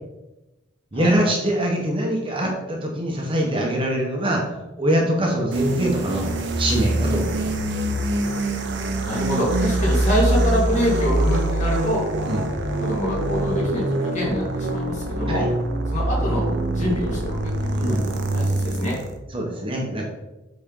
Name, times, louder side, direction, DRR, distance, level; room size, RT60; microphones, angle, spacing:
voice 1, 0.9-4.4 4.8-6.3 6.6-7.6 12.3-12.5 15.3-15.5 17.8-18.1 19.3-20.0, right 1 dB, 25° right, 0 dB, 1.1 m, -23 dB
sound 1, 5.5-19.2, right 1 dB, 65° right, 0.8 m, -24 dB
voice 2, 9.0-12.0 12.8-15.4 15.9-19.0, equal, 40° left, -5 dB, 2.6 m, -25 dB
8.5 x 4.2 x 3.8 m, 1.0 s
head